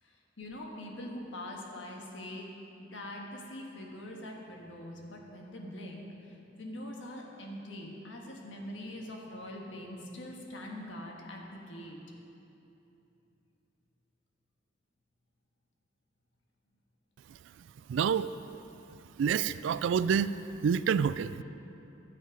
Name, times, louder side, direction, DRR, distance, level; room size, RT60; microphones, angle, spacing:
voice 1, 0.0-2.5 2.8-12.0, left 1 dB, 90° left, 0 dB, 1.5 m, -43 dB
voice 2, 17.9-18.3 19.2-21.4, right 7 dB, 80° right, 15 dB, 0.3 m, -28 dB
12.5 x 7.7 x 5.2 m, 2.9 s
head